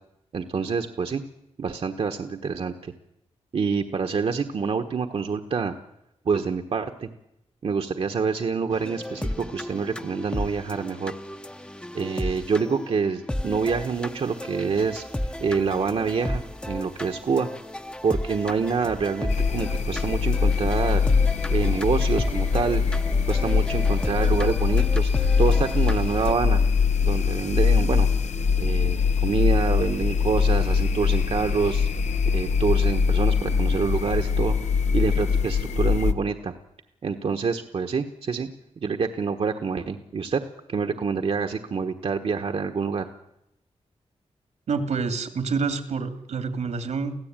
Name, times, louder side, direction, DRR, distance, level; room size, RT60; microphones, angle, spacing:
voice 1, 0.3-1.2 1.6-2.9 3.5-5.7 6.2-7.1 7.6-11.1 11.9-15.0 15.4-17.5 18.0-21.0 21.5-22.8 23.3-25.1 25.4-26.6 27.0-28.1 28.6-31.9 32.3-34.6 34.9-36.5 37.0-38.5 38.8-40.4 40.7-43.0, right 5 dB, 55° right, 5 dB, 1.3 m, -26 dB
sound 1, 8.7-26.3, left 1 dB, 10° left, 0.8 m, -34 dB
sound 2, 19.3-36.1, left 6 dB, 80° left, 1.2 m, -22 dB
voice 2, 44.7-47.2, right 5 dB, 80° right, 9 dB, 2.7 m, -27 dB
24.5 x 16.0 x 9.0 m, 0.86 s
wide cardioid pair, 110°, 12 cm